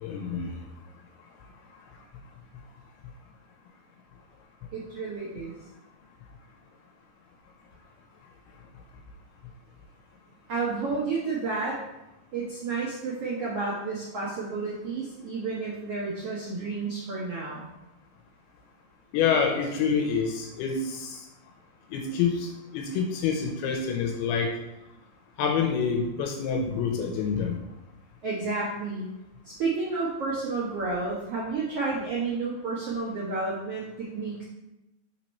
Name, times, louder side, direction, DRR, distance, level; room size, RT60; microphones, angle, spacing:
voice 1, 0.0-0.6 19.1-21.2 21.9-24.6 25.4-27.6, left 6 dB, 80° left, 3 dB, 2.5 m, -27 dB
voice 2, 4.7-5.5 10.5-11.8 12.3-17.7 28.2-29.0 29.4-34.4, right 4 dB, 75° right, -7 dB, 1.3 m, -31 dB
5.9 x 4.5 x 4.1 m, 0.93 s
omnidirectional pair, 4.6 m